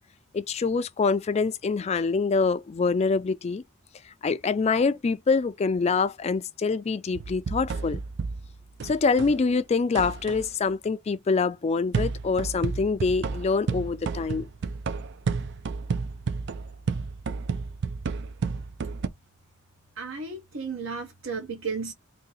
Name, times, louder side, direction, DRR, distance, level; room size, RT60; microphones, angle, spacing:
voice 1, 0.3-3.6 4.2-8.0 8.8-14.5, left 4 dB, 30° left, 0.3 m, -25 dB
sound 1, 7.1-9.4 9.9-10.5 11.9-19.1, right 4 dB, 55° right, 0.4 m, -31 dB
voice 2, 20.0-21.9, right 4 dB, 70° right, 0.9 m, -33 dB
2.8 x 2.7 x 3.9 m
head